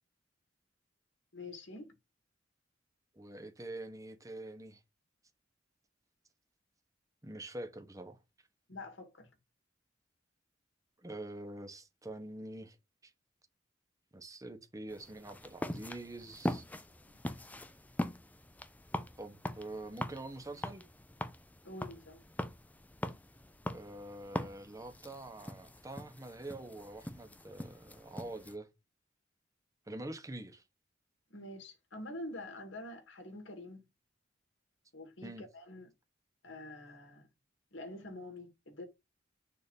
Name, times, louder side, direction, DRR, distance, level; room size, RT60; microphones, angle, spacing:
voice 1, 1.3-1.9 8.7-9.3 17.1-17.2 21.6-22.2 31.3-33.8 34.9-35.9 36.4-37.3 37.7-38.8, left 1 dB, 75° left, 2.1 m, -46 dB
voice 2, 3.1-4.8 7.2-8.2 11.0-12.8 13.0-13.1 14.1-16.6 19.2-20.9 23.7-28.7 29.9-30.6 35.2-35.4, right 2 dB, 20° right, 0.9 m, -45 dB
sound 1, 14.9-28.5, left 1 dB, 10° left, 0.4 m, -42 dB
6.5 x 2.8 x 5.2 m
head